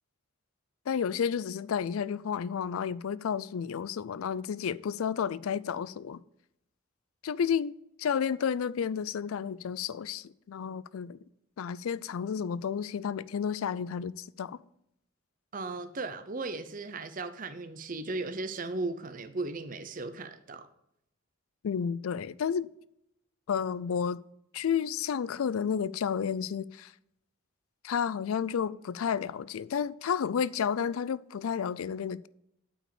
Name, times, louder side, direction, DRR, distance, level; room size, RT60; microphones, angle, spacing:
voice 1, 0.9-6.2 7.2-7.7 8.0-11.2 11.6-14.6 21.6-22.7 23.5-24.2 24.5-26.9 27.8-32.3, left 7 dB, 85° left, 0.4 m, -31 dB
voice 2, 15.5-20.7, right 3 dB, 40° right, 0.6 m, -36 dB
8.7 x 4.9 x 7.0 m
head